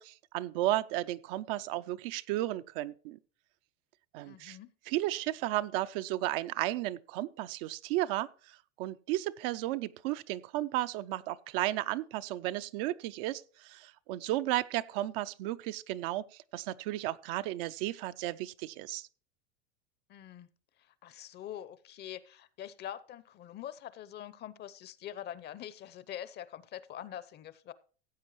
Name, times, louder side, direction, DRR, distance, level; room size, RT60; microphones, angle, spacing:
voice 1, 0.0-3.2 4.1-4.6 4.9-19.1, right 15 dB, 55° right, 0.6 m, -34 dB
voice 2, 4.2-4.7 20.1-20.5 20.8-27.7, left 11 dB, 30° left, 0.7 m, -44 dB
15.5 x 8.2 x 3.1 m
hypercardioid pair, 115°, 33 cm